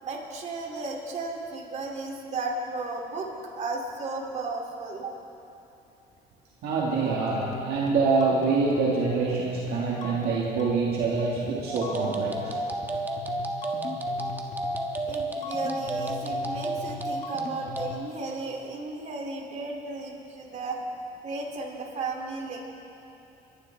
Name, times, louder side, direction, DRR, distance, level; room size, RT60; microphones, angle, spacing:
voice 1, 0.0-5.1 15.0-20.8 21.2-22.6, right 3 dB, 45° right, -2 dB, 2.8 m, -34 dB
voice 2, 6.6-12.6, right 4 dB, 70° right, -5 dB, 1.9 m, -25 dB
sound 1, 7.3-18.0, left 4 dB, 45° left, 1.5 m, -40 dB
sound 2, 11.7-17.9, right 2 dB, 10° right, 1.2 m, -32 dB
25.0 x 11.0 x 3.4 m, 2.9 s
cardioid pair, 110°, 17 cm